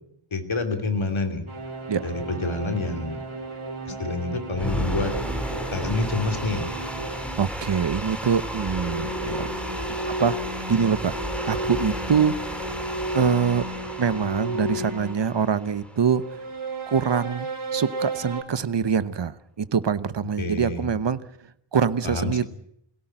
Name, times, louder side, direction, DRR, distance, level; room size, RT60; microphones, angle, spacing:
voice 1, 0.3-1.4 2.0-3.2 3.8-5.1 5.7-6.7 6.9-7.1 20.4-21.0 22.0-22.5, left 3 dB, 70° left, 6 dB, 3.0 m, -28 dB
sound 1, 1.5-7.4 8.4-15.3 16.2-18.4, right 1 dB, 85° right, 3.9 m, -33 dB
sound 2, 4.5-16.7, equal, ahead, 4.0 m, -34 dB
voice 2, 7.4-9.8 10.0-12.4 13.1-13.6 14.0-16.2 16.9-22.4, right 6 dB, 60° right, 14 dB, 1.0 m, -24 dB
22.5 x 17.0 x 8.9 m, 0.72 s
wide cardioid pair, 85°, 48 cm